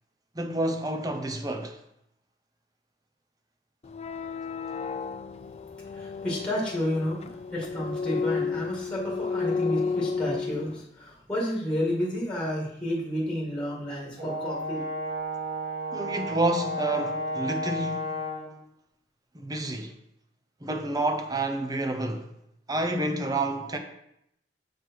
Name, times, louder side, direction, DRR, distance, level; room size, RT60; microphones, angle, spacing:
voice 1, 0.4-1.8 15.9-18.2 19.3-19.9 20.6-22.3 22.7-23.8, right 2 dB, 20° right, 0.7 m, -29 dB
sound 1, 3.8-10.8, left 5 dB, 35° left, 0.4 m, -32 dB
voice 2, 5.9-14.8, left 1 dB, 5° left, 1.9 m, -31 dB
Brass instrument, 14.2-18.6, equal, 40° right, 2.3 m, -32 dB
6.5 x 4.7 x 4.6 m
head